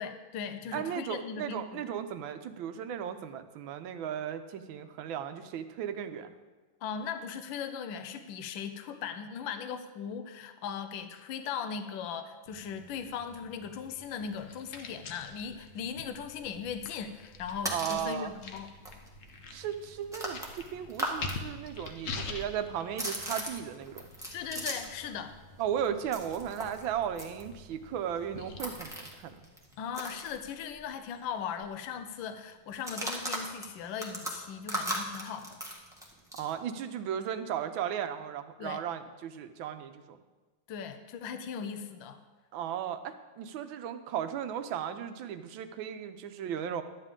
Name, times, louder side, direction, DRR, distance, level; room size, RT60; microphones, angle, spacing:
voice 1, 0.0-1.9 6.8-18.7 24.3-25.4 29.8-35.6 38.6-38.8 40.7-42.2, left 7 dB, 75° left, 9 dB, 1.4 m, -38 dB
voice 2, 0.7-6.3 17.7-18.3 19.5-24.0 25.6-29.4 36.3-40.2 42.5-46.8, right 9 dB, 80° right, 9 dB, 1.4 m, -36 dB
sound 1, 12.5-29.4, left 3 dB, 55° left, 0.9 m, -46 dB
sound 2, 17.4-18.1 18.6-18.7 18.8-21.4 21.6-25.0 25.3-31.0 31.2-31.4 31.6-32.0 32.7-36.5, right 1 dB, ahead, 1.0 m, -38 dB
12.0 x 9.0 x 3.7 m, 1.2 s
omnidirectional pair, 2.2 m